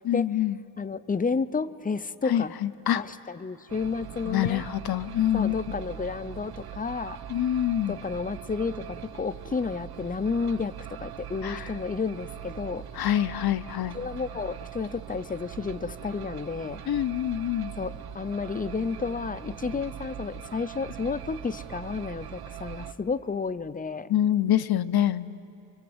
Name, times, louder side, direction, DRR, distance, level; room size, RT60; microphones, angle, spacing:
voice 1, 0.0-0.6 2.3-3.0 4.3-5.6 7.3-8.0 11.4-11.7 12.9-14.0 16.9-17.7 24.1-25.3, left 11 dB, 70° left, 12 dB, 0.8 m, -25 dB
voice 2, 0.8-2.5 2.9-4.6 5.3-7.2 7.9-12.8 13.9-16.8 17.8-24.1, left 5 dB, 20° left, 14 dB, 0.6 m, -31 dB
sound 1, 3.7-22.9, right 9 dB, 70° right, 1.0 m, -41 dB
29.0 x 25.0 x 7.9 m, 2.9 s
wide cardioid pair, 125°, 38 cm